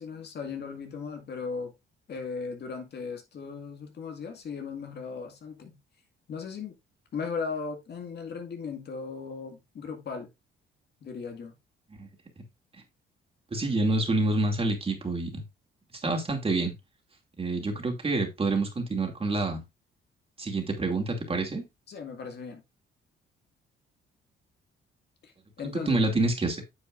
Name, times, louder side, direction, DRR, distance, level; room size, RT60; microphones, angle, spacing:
voice 1, 0.0-1.7 2.1-5.8 6.3-6.7 7.1-10.3 11.0-11.5 13.5-13.6 21.9-22.6 25.2-26.1, left 5 dB, 55° left, 2.0 m, -37 dB
voice 2, 13.5-15.4 16.0-16.7 17.4-19.6 20.4-21.6 25.7-26.6, right 2 dB, 30° right, 2.6 m, -27 dB
9.5 x 7.0 x 2.5 m
cardioid pair, 90°, 20 cm